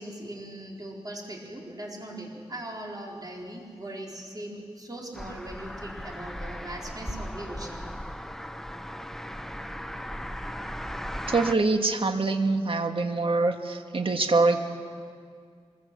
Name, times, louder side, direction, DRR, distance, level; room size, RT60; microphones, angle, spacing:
voice 1, 0.0-7.8, right 1 dB, 35° right, -1 dB, 4.3 m, -39 dB
sound 1, 5.1-11.5, equal, 5° left, 0.9 m, -37 dB
voice 2, 11.3-14.6, right 3 dB, 55° right, 5 dB, 1.9 m, -24 dB
24.5 x 21.5 x 7.6 m, 2.1 s
wide cardioid pair, 65°, 11 cm